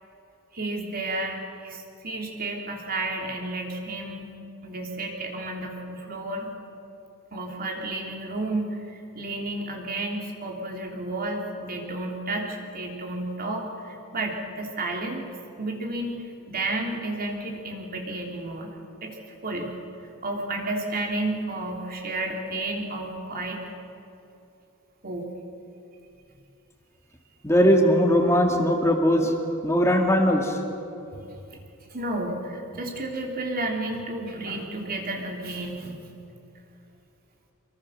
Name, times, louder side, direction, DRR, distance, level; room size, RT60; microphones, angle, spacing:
voice 1, 0.5-4.3 4.6-6.5 7.3-8.8 9.1-15.3 15.6-16.2 16.5-18.7 19.0-19.2 19.4-19.7 20.2-23.6 25.0-25.2 31.1-31.2 31.9-36.0, right 2 dB, 45° right, 1 dB, 3.1 m, -31 dB
voice 2, 27.4-29.3 29.6-30.6, equal, 15° left, 2 dB, 2.1 m, -20 dB
25.5 x 23.0 x 6.5 m, 2.8 s
head